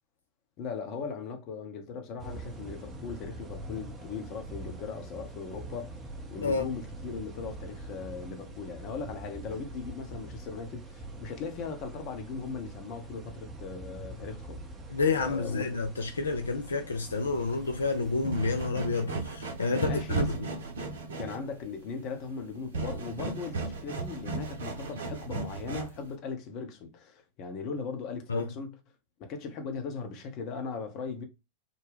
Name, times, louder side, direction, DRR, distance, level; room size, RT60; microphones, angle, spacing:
voice 1, 0.6-5.9 6.3-14.6 15.2-15.6 19.8-20.3 21.2-28.8 29.2-31.2, left 5 dB, 40° left, 0.8 m, -38 dB
sound 1, 2.2-18.7, right 2 dB, 20° right, 0.7 m, -44 dB
voice 2, 14.9-20.5 28.3-28.5, left 4 dB, 75° left, 0.4 m, -29 dB
sound 2, 17.2-26.1, right 3 dB, 65° right, 0.7 m, -36 dB
3.8 x 2.2 x 3.4 m
figure-of-eight pair, 90°, 0 cm